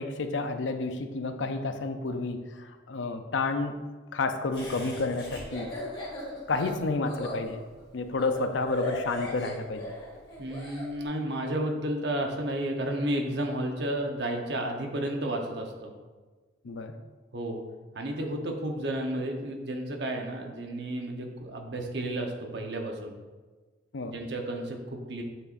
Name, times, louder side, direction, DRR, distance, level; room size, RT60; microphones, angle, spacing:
voice 1, 0.0-3.8 4.1-5.7 6.2-7.6 7.9-9.9 16.6-16.9 23.9-24.2, left 3 dB, 80° left, 8 dB, 0.6 m, -30 dB
Laughter, 4.5-10.9, left 1 dB, 25° left, 2.0 m, -38 dB
voice 2, 10.4-15.9 17.3-17.6 17.9-23.1 24.1-25.2, right 1 dB, 60° right, 2 dB, 0.9 m, -32 dB
7.8 x 6.7 x 2.6 m, 1.3 s
head